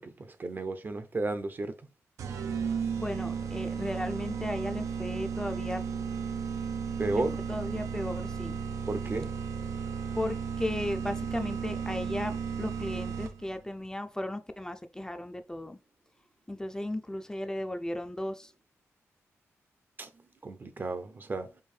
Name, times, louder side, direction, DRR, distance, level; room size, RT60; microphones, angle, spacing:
voice 1, 0.0-1.7 7.0-7.3 8.9-9.3 20.0-20.1 20.4-21.5, right 2 dB, 40° right, 0.6 m, -33 dB
sound 1, 2.2-13.6, right 6 dB, 90° right, 0.5 m, -34 dB
voice 2, 3.0-5.8 7.1-8.6 10.2-15.8 16.5-18.5, left 1 dB, 10° left, 0.4 m, -35 dB
4.5 x 2.6 x 3.2 m
cardioid pair, 80°, 5 cm